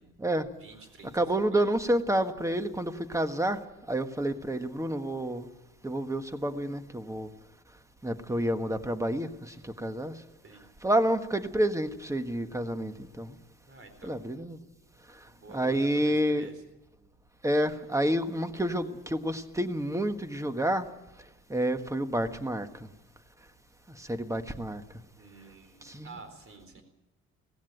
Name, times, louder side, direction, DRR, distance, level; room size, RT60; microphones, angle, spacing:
voice 1, 0.6-1.7 10.4-10.7 13.7-14.2 15.3-16.6 25.2-26.8, right 3 dB, 45° right, 8 dB, 4.3 m, -50 dB
voice 2, 1.1-3.6 3.9-5.4 5.8-7.3 8.0-10.1 10.8-13.3 14.0-14.6 15.5-16.5 17.4-20.8 21.5-22.7 24.0-24.8 25.9-26.1, right 1 dB, 10° right, 9 dB, 1.5 m, -29 dB
17.5 x 16.0 x 9.3 m, 0.97 s
cardioid pair, 90°, 30 cm